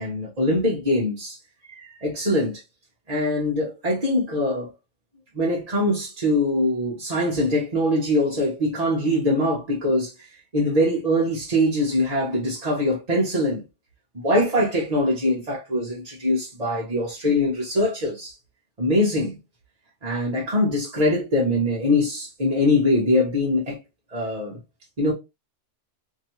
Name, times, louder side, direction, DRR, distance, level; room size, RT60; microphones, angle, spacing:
voice 1, 0.0-1.4 1.7-2.6 3.1-4.7 5.3-10.1 10.5-13.6 14.2-18.3 18.8-19.4 20.0-23.8 24.1-24.6 25.0-25.1, left 1 dB, 35° right, 1.0 m, -23 dB
3.0 x 2.7 x 2.9 m
omnidirectional pair, 1.2 m